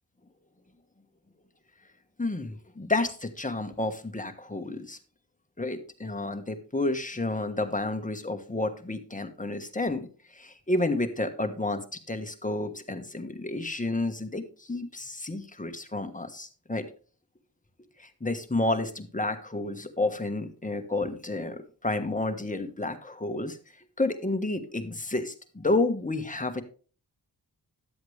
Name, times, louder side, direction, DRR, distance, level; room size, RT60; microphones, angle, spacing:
voice 1, 2.2-5.0 5.6-16.9 18.0-23.6 24.0-26.6, left 2 dB, 20° left, 7 dB, 1.3 m, -30 dB
11.0 x 7.8 x 3.3 m, 0.38 s
cardioid pair, 55°, 43 cm